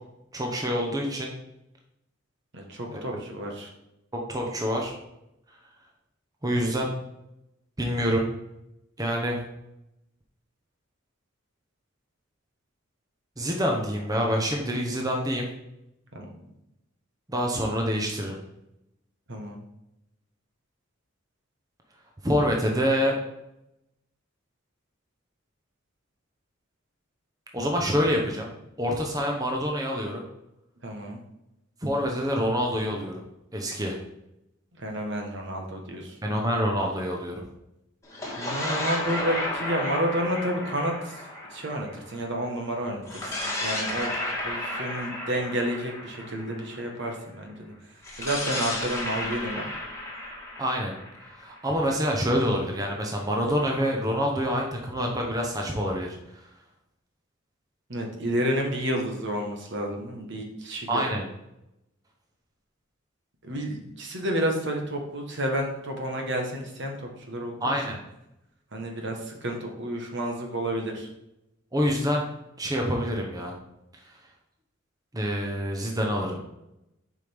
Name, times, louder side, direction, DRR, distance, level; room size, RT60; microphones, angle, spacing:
voice 1, 0.3-1.3 2.9-3.0 4.1-4.9 6.4-6.9 7.8-8.3 9.0-9.4 13.4-15.5 17.3-18.3 22.2-23.2 27.5-28.5 28.8-30.2 31.8-33.1 33.5-34.0 36.2-37.4 50.6-50.9 51.3-56.5 60.9-61.2 67.6-68.0 71.7-72.2 72.6-73.5 74.0-74.2 75.1-76.4, equal, 20° right, 0 dB, 0.8 m, -26 dB
voice 2, 2.5-3.7 16.1-16.3 19.3-19.6 30.8-31.2 34.8-36.2 38.4-41.2 41.5-43.3 43.6-44.1 44.4-47.5 48.2-49.6 57.9-61.0 63.4-67.7 68.7-71.1, right 1 dB, 60° right, 2 dB, 1.3 m, -30 dB
sound 1, 38.0-42.5 43.0-47.0 48.0-51.8, left 1 dB, 15° left, 1.6 m, -33 dB
7.4 x 5.1 x 3.5 m, 0.88 s
head